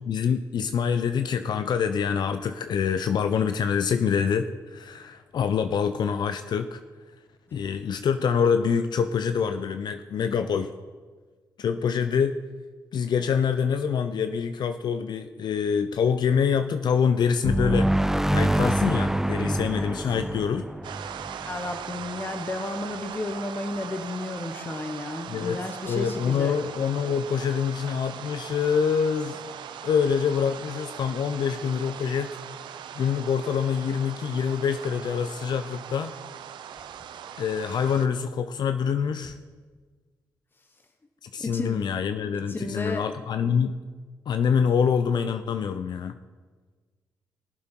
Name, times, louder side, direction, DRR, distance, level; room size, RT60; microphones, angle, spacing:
voice 1, 0.1-6.8 7.5-10.7 11.6-12.4 12.9-17.9 18.3-20.7 25.3-29.4 29.8-32.4 32.9-36.2 37.4-39.3 41.2-43.8 44.3-46.1, left 7 dB, 65° left, 9 dB, 0.5 m, -25 dB
sound 1, 17.4-22.0, right 1 dB, 5° right, 0.5 m, -25 dB
sound 2, 20.8-38.1, right 9 dB, 75° right, 0.6 m, -40 dB
voice 2, 21.1-26.6 41.3-41.9 42.5-43.1, left 2 dB, 25° left, 6 dB, 1.2 m, -33 dB
20.5 x 7.6 x 4.5 m, 1.5 s
supercardioid pair, 55°, 8 cm